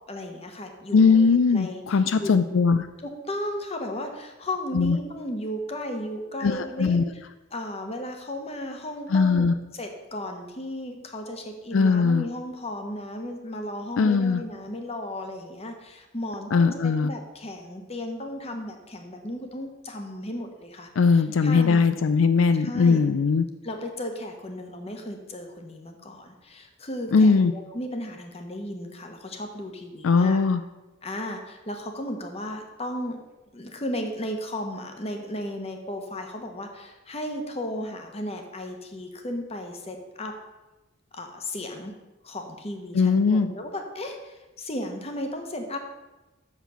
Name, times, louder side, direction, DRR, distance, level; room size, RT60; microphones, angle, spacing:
voice 1, 0.1-2.4 3.0-7.2 7.5-20.9 21.4-21.8 22.5-23.0 23.6-30.4 31.0-33.2 33.5-40.3 41.1-41.9 42.2-45.8, left 1 dB, 30° left, 4 dB, 1.1 m, -35 dB
voice 2, 0.9-2.9 4.7-5.0 6.4-7.0 9.1-9.5 11.7-12.2 14.0-14.4 16.5-17.1 21.0-23.5 27.1-27.5 30.0-30.6 42.9-43.5, left 4 dB, 80° left, 11 dB, 0.4 m, -20 dB
6.4 x 5.9 x 6.9 m, 1.1 s
head